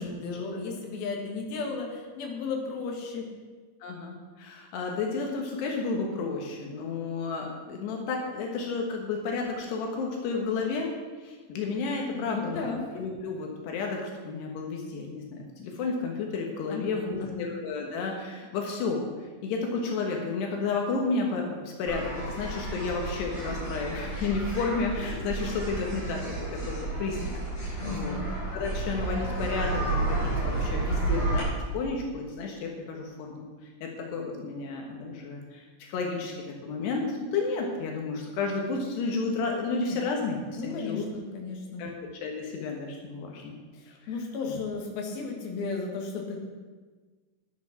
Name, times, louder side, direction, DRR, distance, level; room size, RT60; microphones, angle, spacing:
voice 1, 0.0-3.3 12.1-12.8 16.7-17.5 27.8-28.3 40.5-41.8 43.7-46.4, left 4 dB, 65° left, 1 dB, 3.4 m, -34 dB
voice 2, 3.8-10.9 11.2-12.6 12.9-19.1 19.4-26.4 26.7-27.3 27.6-28.2 28.5-31.5 31.7-33.5 33.8-36.3 36.6-41.1 41.8-41.9 42.2-43.5, left 4 dB, 85° left, 1 dB, 3.5 m, -32 dB
sound 1, 21.9-31.4, right 2 dB, 35° left, 5.7 m, -31 dB
11.0 x 10.5 x 6.0 m, 1.4 s
omnidirectional pair, 4.7 m